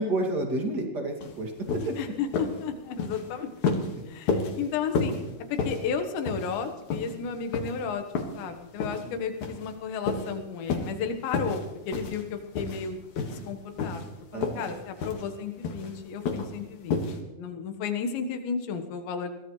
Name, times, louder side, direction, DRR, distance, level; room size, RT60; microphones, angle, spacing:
voice 1, 0.0-1.9 9.0-9.1 14.3-14.7, right 1 dB, 30° right, 1 dB, 2.2 m, -30 dB
sound 1, 1.2-1.3 1.7-2.0 2.3-2.6 2.9-3.2 3.6-3.9 4.3-4.6 5.0-5.2 5.6-5.9 6.3-6.6 6.9-7.1 7.5-7.7 8.2-8.4 8.8-9.0 9.4-9.7 10.1-10.3 10.7-10.9 11.3-11.6 11.9-12.2 12.5-12.9 13.2-13.5 13.8-14.1 14.4-14.7 15.0-15.2 15.6-15.9 16.3-16.5 16.9-17.2, left 4 dB, 55° left, 2.6 m, -30 dB
voice 2, 2.0-3.7 4.1-5.1 5.5-8.0 8.4-13.0 13.5-14.0 14.3-17.0 17.4-19.3, left 6 dB, 85° left, 6 dB, 3.7 m, -33 dB
22.5 x 18.0 x 3.2 m, 0.99 s
omnidirectional pair, 5.0 m